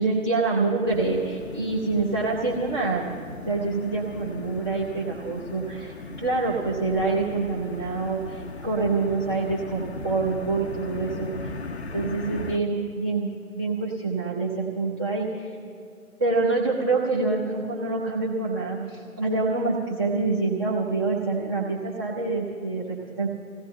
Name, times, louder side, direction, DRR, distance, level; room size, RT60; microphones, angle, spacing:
voice 1, 0.0-3.1 3.5-11.5 11.9-13.3 13.5-15.6 16.2-23.3, right 3 dB, 15° right, -7 dB, 1.0 m, -26 dB
sound 1, 0.9-12.6, left 3 dB, 50° left, 0.7 m, -38 dB
30.0 x 16.5 x 2.2 m, 2.3 s
figure-of-eight pair, 150°, 43 cm